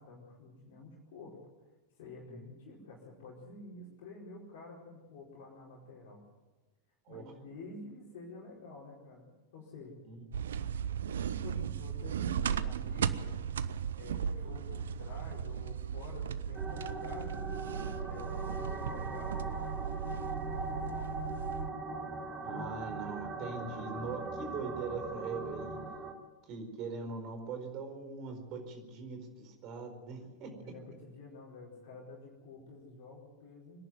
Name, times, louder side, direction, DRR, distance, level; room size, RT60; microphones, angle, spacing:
voice 1, 0.0-1.4 2.0-6.2 7.1-9.9 11.2-17.4 17.7-21.5 30.5-33.8, left 3 dB, 55° left, -4 dB, 4.7 m, -50 dB
sound 1, 10.3-21.7, right 8 dB, 65° right, 0.7 m, -36 dB
sound 2, 16.6-26.1, right 2 dB, 15° right, 3.1 m, -40 dB
voice 2, 22.4-25.8 26.5-30.5, right 4 dB, 40° right, 5 dB, 4.5 m, -41 dB
25.5 x 11.0 x 9.5 m, 1.2 s
figure-of-eight pair, 90°, 0 cm